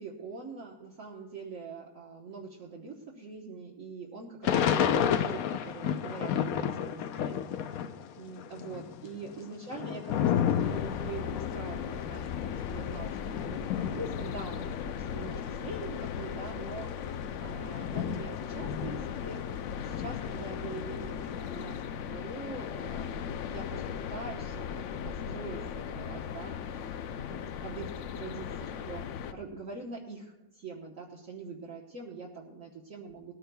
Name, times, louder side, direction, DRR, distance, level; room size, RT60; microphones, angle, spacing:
voice 1, 0.0-7.8 8.2-19.4 19.8-24.9 25.3-33.3, right 3 dB, 65° right, -2 dB, 1.6 m, -44 dB
Thunder / Rain, 4.4-8.1 8.4-15.4 16.0-16.1 16.3-19.5 19.9-21.6, left 9 dB, 85° left, 1.1 m, -32 dB
sound 1, 10.6-29.3, left 8 dB, 65° left, 0.8 m, -37 dB
20.5 x 14.5 x 2.3 m, 1.0 s
omnidirectional pair, 1.5 m